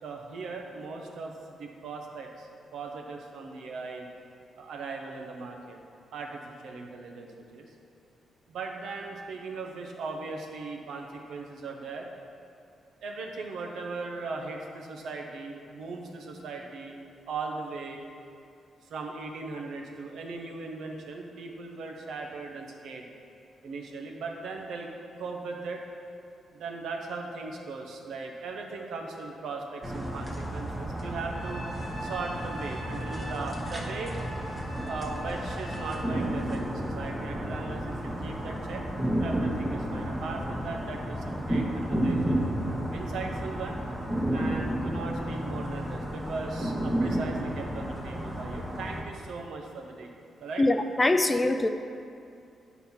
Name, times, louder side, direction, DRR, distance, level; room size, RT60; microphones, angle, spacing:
voice 1, 0.0-4.1 4.6-5.8 6.1-7.7 8.5-12.1 13.0-17.0 17.3-18.1 18.8-23.0 23.6-24.9 25.2-25.9 26.5-31.6 32.0-34.2 34.8-38.8 39.2-42.5 42.9-43.8 44.3-50.1 50.4-50.7, right 3 dB, 80° right, 1 dB, 0.9 m, -38 dB
sound 1, 29.8-49.0, right 1 dB, 10° right, 1.0 m, -32 dB
Trumpet, 31.3-36.4, right 1 dB, 40° left, 1.0 m, -43 dB
voice 2, 50.6-51.7, left 2 dB, 20° left, 8 dB, 0.4 m, -23 dB
9.0 x 4.1 x 5.6 m, 2.5 s
cardioid pair, 105°, 0 cm